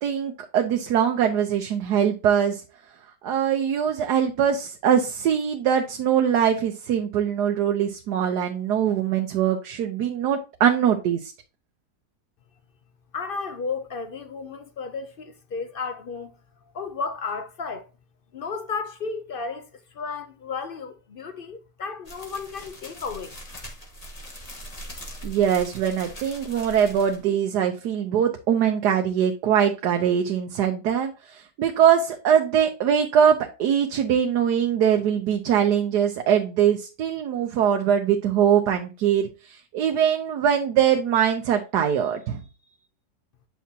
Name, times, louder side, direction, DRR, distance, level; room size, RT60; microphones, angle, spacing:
voice 1, 0.0-2.6 3.2-11.3 25.2-42.4, right 8 dB, 85° right, 1.3 m, -22 dB
voice 2, 13.1-16.3 16.7-17.9 18.3-19.7 19.9-23.3, left 5 dB, 60° left, 0.5 m, -33 dB
sound 1, 22.0-27.2, equal, 25° left, 1.6 m, -41 dB
8.3 x 5.9 x 2.8 m
omnidirectional pair, 1.7 m